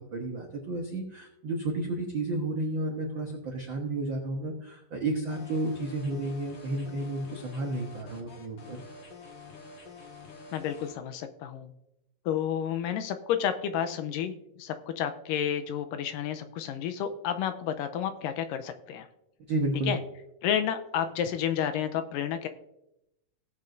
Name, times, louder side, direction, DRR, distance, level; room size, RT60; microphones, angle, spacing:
voice 1, 0.0-8.8 19.5-20.0, right 2 dB, 80° right, 1 dB, 1.0 m, -32 dB
sound 1, 5.3-10.9, left 4 dB, 45° left, 1.6 m, -47 dB
voice 2, 10.5-11.7 12.3-19.1 19.9-20.0 20.4-22.5, left 9 dB, 85° left, 8 dB, 2.3 m, -31 dB
18.0 x 7.5 x 2.6 m, 0.87 s
omnidirectional pair, 3.9 m